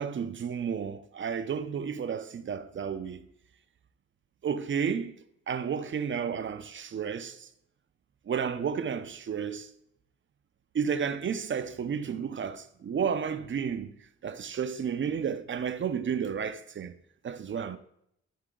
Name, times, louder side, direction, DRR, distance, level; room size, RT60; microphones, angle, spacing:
voice 1, 0.0-3.3 4.4-5.1 5.5-7.5 8.3-9.7 10.7-13.9 14.2-16.9 17.2-17.8, right 7 dB, 40° right, 0.6 m, -32 dB
13.0 x 4.9 x 3.8 m
cardioid pair, 90°, 30 cm